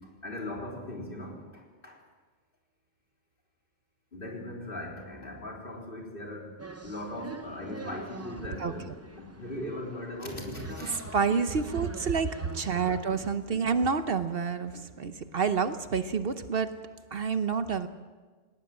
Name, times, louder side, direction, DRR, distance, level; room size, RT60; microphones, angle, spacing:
voice 1, 0.0-2.0 4.1-11.0 13.5-13.7, left 1 dB, 50° left, -1 dB, 3.9 m, -39 dB
sound 1, 6.6-13.3, right 2 dB, 15° right, 0.8 m, -45 dB
voice 2, 10.9-16.7 17.1-17.9, right 5 dB, 60° right, 10 dB, 1.1 m, -28 dB
18.5 x 18.5 x 7.6 m, 1.4 s
omnidirectional pair, 1.1 m